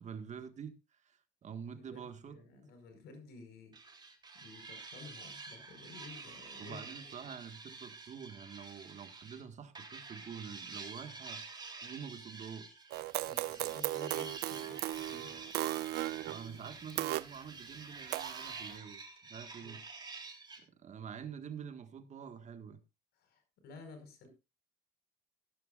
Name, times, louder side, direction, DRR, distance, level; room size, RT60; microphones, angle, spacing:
voice 1, 0.0-2.4 6.6-11.4 11.8-12.8 16.2-19.8 20.6-22.8, right 7 dB, 45° right, 1.8 m, -47 dB
voice 2, 1.7-3.8 4.3-7.1 13.2-15.5 19.6-19.8 23.1-24.3, left 3 dB, 75° left, 5.4 m, -53 dB
sound 1, 3.7-9.4 9.8-20.6, right 4 dB, 25° right, 3.5 m, -49 dB
sound 2, 12.9-17.2 18.1-18.8, right 17 dB, 75° right, 0.5 m, -37 dB
15.5 x 13.0 x 2.5 m
cardioid pair, 110°, 17 cm